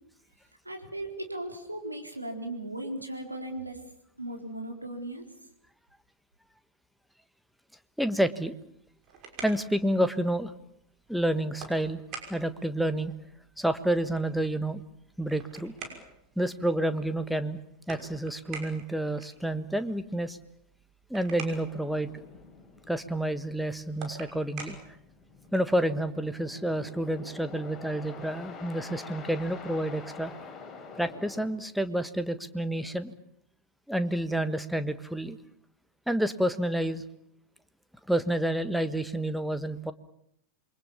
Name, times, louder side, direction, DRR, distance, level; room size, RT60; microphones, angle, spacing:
voice 1, 0.6-3.8 4.2-5.3, right 1 dB, 85° right, 2 dB, 4.1 m, -37 dB
voice 2, 8.0-8.5 9.4-10.5 11.1-12.0 12.3-13.1 13.6-14.8 15.2-15.7 16.4-17.6 17.9-20.4 21.1-22.1 22.9-24.8 25.5-30.3 30.9-33.1 33.9-35.4 36.1-37.0 38.1-39.9, right 1 dB, ahead, 11 dB, 1.4 m, -29 dB
sound 1, 8.7-25.8, right 5 dB, 40° right, 5.9 m, -48 dB
sound 2, 21.7-31.5, left 5 dB, 20° left, 5.7 m, -47 dB
28.0 x 23.0 x 7.2 m, 0.72 s
figure-of-eight pair, 90°, 0 cm